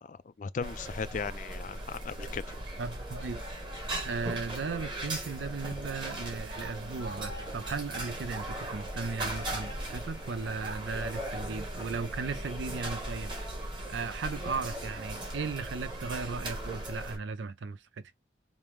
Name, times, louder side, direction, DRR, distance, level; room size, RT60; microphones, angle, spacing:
voice 1, 0.0-2.4, left 5 dB, 45° left, 0.3 m, -37 dB
sound 1, 0.6-17.2, right 1 dB, 25° right, 1.1 m, -38 dB
voice 2, 2.8-3.4 4.0-13.3 13.9-18.1, right 4 dB, 90° right, 0.5 m, -36 dB
5.2 x 2.0 x 3.0 m
head